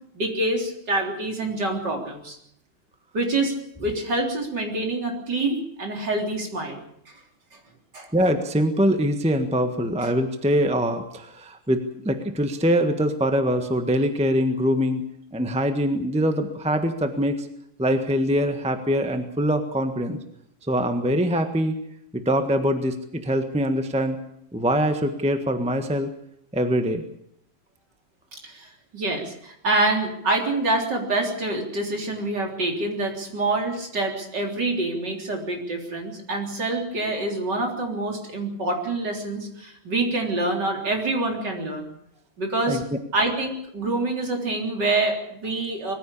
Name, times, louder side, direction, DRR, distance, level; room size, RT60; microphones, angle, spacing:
voice 1, 0.1-2.4 3.1-7.1 7.9-8.1 28.4-41.9 42.4-42.8 43.1-46.0, right 2 dB, 55° right, 2 dB, 4.3 m, -26 dB
voice 2, 8.1-15.0 15.3-17.5 17.8-20.2 20.7-21.8 22.1-24.2 24.5-26.1 26.5-27.0 42.7-42.8, equal, 5° right, 7 dB, 1.2 m, -23 dB
21.5 x 15.0 x 8.6 m, 0.73 s
omnidirectional pair, 2.3 m